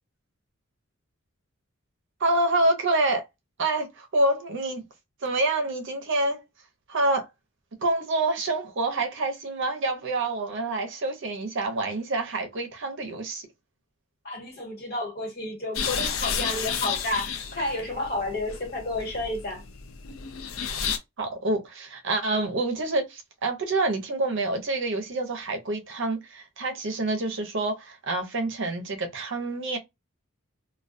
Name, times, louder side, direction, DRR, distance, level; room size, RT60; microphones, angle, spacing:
voice 1, 2.2-3.2 3.6-4.8 5.2-6.4 6.9-7.3 7.8-13.5 21.2-29.8, right 2 dB, 60° right, 0.6 m, -27 dB
voice 2, 14.2-19.6, left 2 dB, 50° left, 1.3 m, -31 dB
sound 1, 15.7-21.0, left 7 dB, 65° left, 0.4 m, -32 dB
2.2 x 2.2 x 2.4 m
head